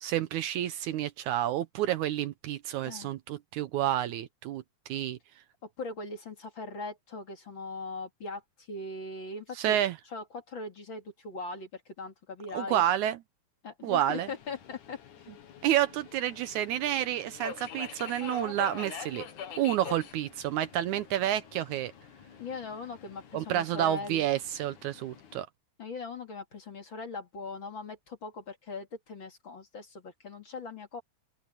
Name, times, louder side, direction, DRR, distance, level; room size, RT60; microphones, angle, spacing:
voice 1, 0.0-5.2 9.6-10.0 12.5-13.2 13.8-14.3 15.6-19.2 19.6-21.9 23.3-25.5, right 12 dB, 75° right, 2.0 m, -29 dB
voice 2, 2.8-3.1 5.6-8.4 8.7-9.8 10.1-12.8 13.6-15.0 19.9-20.0 22.4-24.3 25.8-31.0, left 3 dB, 40° left, 2.8 m, -40 dB
Subway metro underground, 13.9-25.4, left 7 dB, 70° left, 3.3 m, -46 dB
open air
omnidirectional pair, 3.8 m